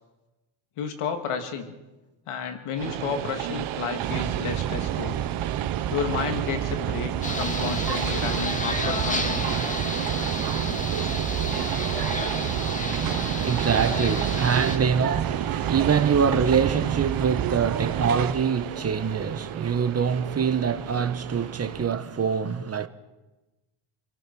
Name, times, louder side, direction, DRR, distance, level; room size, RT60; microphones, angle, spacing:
voice 1, 0.8-1.7 2.3-5.2 5.9-9.5, left 6 dB, 90° left, 2.6 m, -31 dB
Train, 2.8-21.9, right 13 dB, 75° right, 1.1 m, -34 dB
sound 1, 4.0-18.3, right 10 dB, 45° right, 0.8 m, -29 dB
sound 2, 7.2-14.8, left 2 dB, 15° left, 2.1 m, -31 dB
voice 2, 13.0-22.9, right 6 dB, 30° right, 1.1 m, -25 dB
28.0 x 19.0 x 6.2 m
cardioid pair, 145°, 49 cm